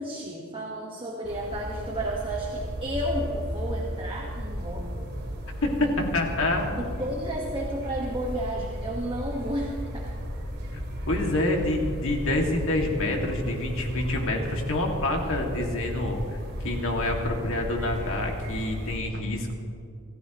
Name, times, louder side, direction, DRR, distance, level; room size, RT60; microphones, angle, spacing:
voice 1, 0.0-4.9 6.8-10.1, right 1 dB, 25° right, -2 dB, 1.5 m, -32 dB
sound 1, 1.2-19.0, equal, 50° right, 2.7 m, -34 dB
voice 2, 5.6-6.8 10.7-10.8 11.1-16.2 16.6-19.5, left 1 dB, 65° left, 1 dB, 2.2 m, -27 dB
27.0 x 14.0 x 3.1 m, 2.5 s
head